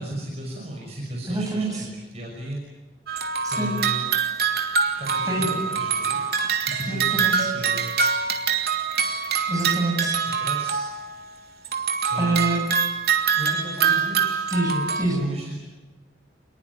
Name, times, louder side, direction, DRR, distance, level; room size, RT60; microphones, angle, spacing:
voice 1, 0.0-1.8 2.1-2.6 3.5-4.1 5.0-6.3 6.7-7.9 10.4-10.8 12.1-12.5 13.4-14.4 15.0-15.6, right 1 dB, 35° right, -2 dB, 5.9 m, -34 dB
voice 2, 1.3-1.9 3.4-3.8 5.2-5.6 6.9-7.5 9.5-10.2 12.1-12.6 13.8-13.9 14.5-15.3, right 2 dB, 20° right, 0 dB, 7.9 m, -26 dB
sound 1, 3.1-11.3 11.6-15.0, right 6 dB, 55° right, 2.9 m, -24 dB
28.5 x 21.0 x 9.7 m, 1.1 s
head